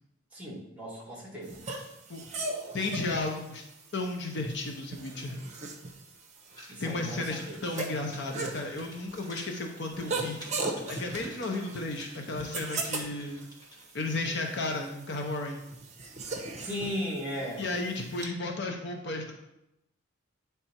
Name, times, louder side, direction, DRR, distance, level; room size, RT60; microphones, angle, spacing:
voice 1, 0.3-1.6 6.7-7.8 16.6-17.6, equal, 10° right, -4 dB, 1.7 m, -36 dB
sound 1, 1.4-18.3, right 3 dB, 35° right, 0.8 m, -39 dB
voice 2, 2.7-3.6 3.9-5.4 6.8-10.4 10.9-13.5 13.9-15.6 17.6-19.3, left 2 dB, 55° left, 3 dB, 0.8 m, -33 dB
sound 2, 6.5-14.0, equal, 20° left, 1.4 m, -50 dB
8.8 x 3.4 x 4.3 m, 0.86 s
head